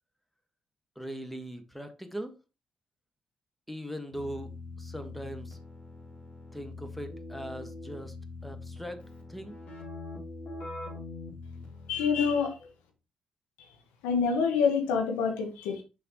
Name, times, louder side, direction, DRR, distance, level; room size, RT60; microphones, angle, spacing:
voice 1, 0.9-2.4 3.7-5.6 6.5-8.1 8.4-9.0 9.3-9.6, equal, 5° left, 7 dB, 1.5 m, -40 dB
Keyboard (musical), 4.1-12.5, left 3 dB, 65° left, 3.3 m, -43 dB
voice 2, 11.9-12.7 14.0-15.8, left 6 dB, 80° left, 4 dB, 1.3 m, -27 dB
6.5 x 5.5 x 3.0 m, 0.29 s
hypercardioid pair, 45°, 3 cm